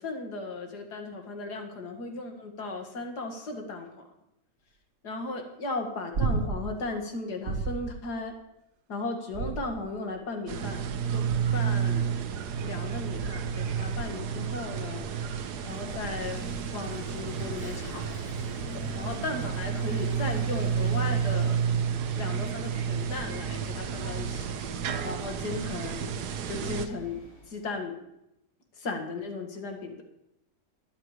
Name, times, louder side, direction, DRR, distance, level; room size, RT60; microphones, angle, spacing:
voice 1, 0.0-4.0 5.0-8.3 8.9-10.8 11.1-11.3 11.5-12.1 12.6-15.0 15.7-18.1 18.7-21.6 22.2-24.5 25.0-26.1 26.5-27.2 27.5-27.9 28.8-30.0, left 3 dB, 60° left, 3 dB, 2.4 m, -36 dB
sound 1, 6.1-6.8 7.5-8.0 9.3-10.0 11.3-11.7 13.2-13.6 16.0-16.1, right 4 dB, 50° right, 1.0 m, -32 dB
sound 2, 10.5-26.9, right 7 dB, 70° right, 1.3 m, -31 dB
Vehicle / Engine, 11.2-27.7, equal, 20° left, 3.5 m, -47 dB
12.5 x 11.0 x 4.9 m, 0.84 s
omnidirectional pair, 1.9 m